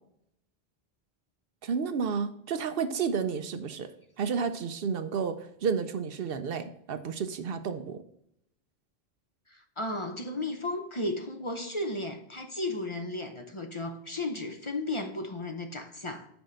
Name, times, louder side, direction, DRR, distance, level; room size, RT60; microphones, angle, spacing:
voice 1, 1.6-3.9 4.2-8.0, right 6 dB, 65° right, 10 dB, 0.8 m, -31 dB
voice 2, 9.5-16.3, left 2 dB, 35° left, 4 dB, 0.7 m, -34 dB
6.1 x 4.6 x 6.4 m, 0.75 s
omnidirectional pair, 1.1 m